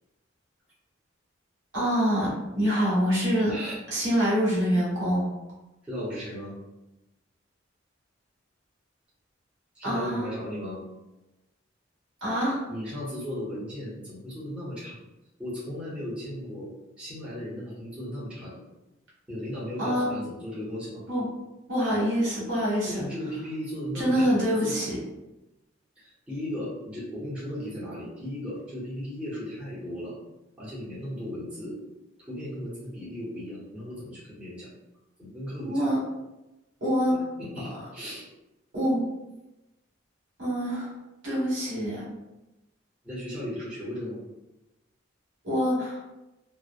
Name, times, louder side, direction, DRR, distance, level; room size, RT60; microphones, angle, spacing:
voice 1, 1.7-3.5 3.9-5.3 9.8-10.2 12.2-12.6 19.8-20.1 21.1-21.3 21.7-23.0 23.9-24.9 35.6-36.0 36.8-37.1 38.7-39.0 40.4-40.9 41.2-42.0 45.4-46.0, equal, 75° right, -7 dB, 1.4 m, -25 dB
voice 2, 5.8-6.5 9.7-10.8 12.7-15.0 15.4-16.7 17.0-18.6 19.3-21.0 22.9-24.8 26.0-30.1 30.6-31.8 32.3-34.7 35.2-35.9 37.1-38.3 43.0-44.2, equal, 5° right, -10 dB, 0.8 m, -36 dB
3.0 x 2.0 x 2.4 m, 0.99 s
head